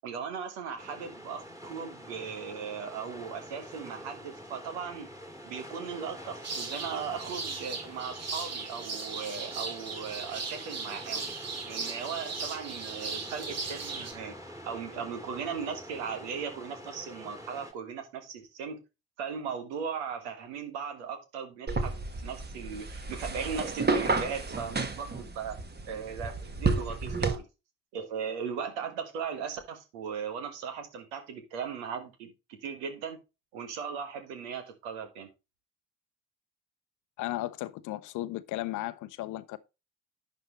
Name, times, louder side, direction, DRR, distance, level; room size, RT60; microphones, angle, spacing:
voice 1, 0.0-5.1 5.4-11.2 11.7-14.3 14.6-18.8 19.2-21.9 22.2-25.5 25.9-27.4 27.9-32.3 32.6-33.2 33.5-35.3, right 6 dB, 75° right, 1.6 m, -38 dB
sound 1, 0.8-17.7, equal, 10° right, 2.4 m, -46 dB
sound 2, 6.4-14.1, right 4 dB, 50° right, 2.2 m, -38 dB
sound 3, 21.7-27.4, right 3 dB, 30° right, 1.6 m, -31 dB
voice 2, 37.2-39.6, left 16 dB, 60° left, 0.8 m, -35 dB
11.0 x 6.1 x 3.2 m
figure-of-eight pair, 45°, 34 cm